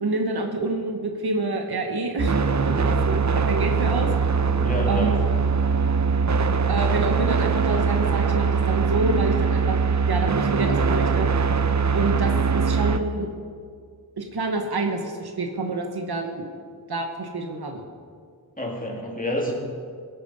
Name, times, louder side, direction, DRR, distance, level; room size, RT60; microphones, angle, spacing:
voice 1, 0.0-4.1 4.9-5.3 6.7-9.8 10.1-11.3 11.9-13.3 14.2-16.5 16.9-17.9, right 2 dB, 90° right, 3 dB, 1.2 m, -27 dB
sound 1, 2.2-13.0, right 5 dB, 50° right, 0.7 m, -22 dB
voice 2, 4.6-5.1 18.6-19.5, equal, 20° left, -2 dB, 2.9 m, -28 dB
17.0 x 8.6 x 5.4 m, 2.1 s
wide cardioid pair, 45°, 37 cm